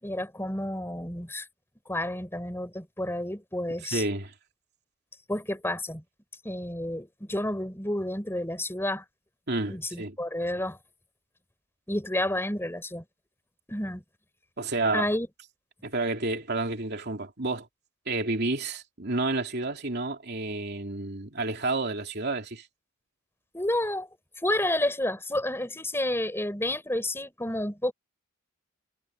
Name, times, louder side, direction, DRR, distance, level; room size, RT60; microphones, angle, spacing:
voice 1, 0.0-1.5 1.8-4.0 5.3-6.0 6.4-9.0 9.7-10.8 11.9-13.0 13.7-14.0 14.9-15.3 23.5-24.1 24.4-27.9, left 1 dB, 10° left, 5.1 m, -30 dB
voice 2, 3.8-4.3 9.5-10.1 14.6-15.1 15.8-17.7 18.1-22.7, right 2 dB, 50° right, 3.2 m, -30 dB
head